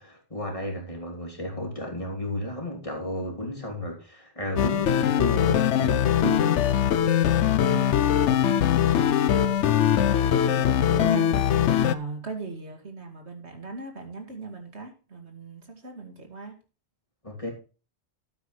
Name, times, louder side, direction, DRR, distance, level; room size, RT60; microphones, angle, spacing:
voice 1, 0.0-6.6 17.2-17.5, left 1 dB, 30° left, 0 dB, 3.0 m, -33 dB
sound 1, 4.6-11.9, left 9 dB, 80° left, 1.0 m, -22 dB
voice 2, 7.7-16.5, right 4 dB, 70° right, 4 dB, 2.6 m, -39 dB
12.5 x 8.8 x 3.2 m, 0.33 s
omnidirectional pair, 1.2 m